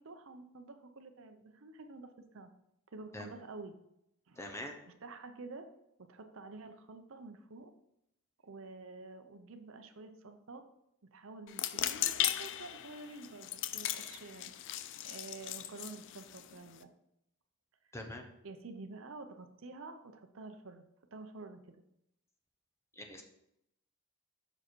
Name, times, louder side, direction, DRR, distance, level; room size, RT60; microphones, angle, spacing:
voice 1, 0.0-2.5 2.9-3.8 4.3-4.4 4.8-5.7 6.0-7.7 8.4-10.6 11.1-14.5 15.0-16.9 18.4-21.8, right 3 dB, 60° right, 7 dB, 0.7 m, -49 dB
voice 2, 4.4-4.7 17.9-18.2 23.0-23.2, left 1 dB, 10° left, 3 dB, 0.8 m, -43 dB
sound 1, 11.5-16.8, left 12 dB, 55° left, 0.4 m, -37 dB
6.5 x 4.9 x 4.5 m, 0.79 s
head